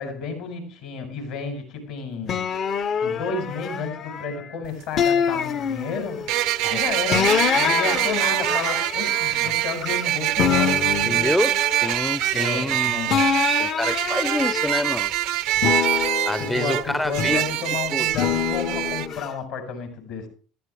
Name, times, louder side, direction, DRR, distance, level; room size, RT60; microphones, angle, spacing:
voice 1, 0.0-2.5 3.0-6.2 6.7-10.8 12.3-13.3 16.0-16.1 16.4-20.3, left 5 dB, 75° left, 4 dB, 4.7 m, -32 dB
sound 1, 2.3-4.4 5.0-6.3 7.1-10.1 10.4-12.7 13.1-15.1 15.6-17.5 18.1-19.3, left 7 dB, 50° left, 0.7 m, -26 dB
sound 2, 4.6-4.7 6.3-19.1, right 14 dB, 70° right, 0.5 m, -24 dB
voice 2, 11.1-11.5 11.8-13.1 13.6-15.1 16.3-17.4 17.9-18.1, left 1 dB, 10° left, 15 dB, 0.5 m, -27 dB
14.5 x 12.5 x 3.3 m, 0.39 s
hypercardioid pair, 80°, 0 cm